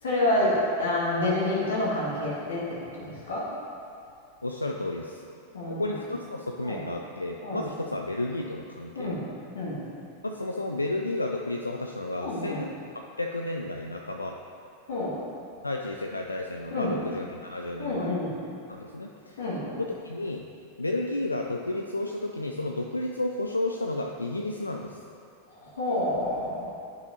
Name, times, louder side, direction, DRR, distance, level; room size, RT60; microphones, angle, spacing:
voice 1, 0.0-2.6 3.0-3.5 5.5-5.9 6.6-6.8 7.4-7.7 8.9-9.2 9.5-9.9 12.2-12.6 14.9-15.2 16.7-16.9 17.8-18.4 19.4-19.7 25.5-26.7, left 1 dB, 65° left, -6 dB, 1.5 m, -28 dB
voice 2, 4.4-5.2 5.7-9.2 10.2-14.4 15.6-18.2 18.7-19.4 19.8-20.4 20.8-25.0, left 2 dB, 80° left, 1 dB, 0.3 m, -32 dB
10.5 x 5.5 x 2.7 m, 2.5 s
figure-of-eight pair, 90°, 0 cm